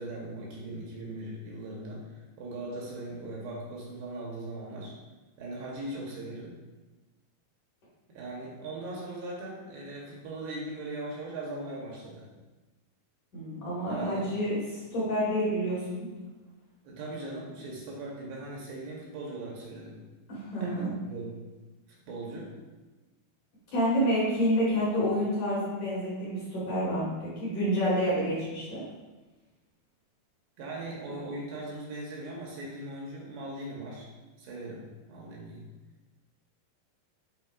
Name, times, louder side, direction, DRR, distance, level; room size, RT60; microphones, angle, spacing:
voice 1, 0.0-2.0 2.4-4.9 5.4-6.5 8.1-12.3 13.9-14.2 16.8-20.0 20.6-21.4 22.1-22.5 30.6-34.1 34.4-34.8 35.1-35.6, right 2 dB, 70° right, -3 dB, 2.9 m, -39 dB
voice 2, 13.3-16.1 20.3-20.9 23.7-28.8, equal, 55° left, -8 dB, 2.6 m, -28 dB
11.0 x 4.2 x 2.5 m, 1.2 s
omnidirectional pair, 5.2 m